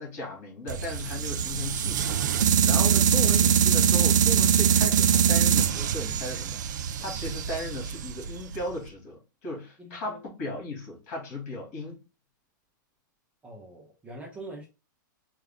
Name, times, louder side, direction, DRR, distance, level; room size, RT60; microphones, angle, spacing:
voice 1, 0.0-12.0, left 1 dB, 40° left, 2.5 m, -36 dB
sound 1, 0.7-8.8, right 8 dB, 60° right, 0.4 m, -23 dB
voice 2, 9.8-10.2 13.4-14.7, right 1 dB, 10° right, 0.5 m, -44 dB
4.5 x 2.4 x 3.5 m
supercardioid pair, 175°, 11 cm